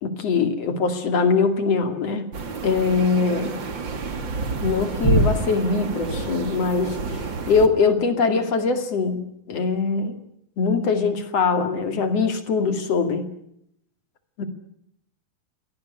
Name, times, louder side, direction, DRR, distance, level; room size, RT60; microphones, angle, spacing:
voice 1, 0.0-2.3 2.6-3.6 4.6-7.2 7.5-9.2 9.5-10.2 10.6-13.3 14.4-14.5, left 4 dB, 45° left, 7 dB, 2.8 m, -22 dB
sound 1, 2.3-7.7, right 2 dB, 35° right, 2.0 m, -27 dB
26.5 x 18.0 x 9.8 m, 0.76 s
omnidirectional pair, 4.9 m